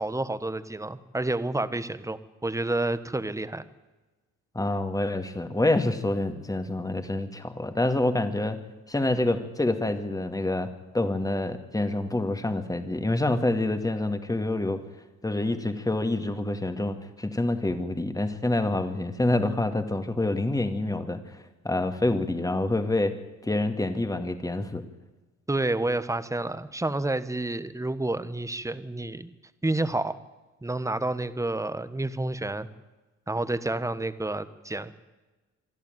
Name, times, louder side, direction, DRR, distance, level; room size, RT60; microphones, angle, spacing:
voice 1, 0.0-3.6 25.5-29.3 29.6-30.2 30.6-32.7 33.3-34.9, right 2 dB, 10° right, 13 dB, 1.3 m, -29 dB
voice 2, 4.5-8.6 8.9-10.7 10.9-14.8 15.2-23.1 23.4-24.8, left 2 dB, 10° left, 8 dB, 2.2 m, -27 dB
26.5 x 11.5 x 9.3 m, 1.2 s
cardioid pair, 90°, 30 cm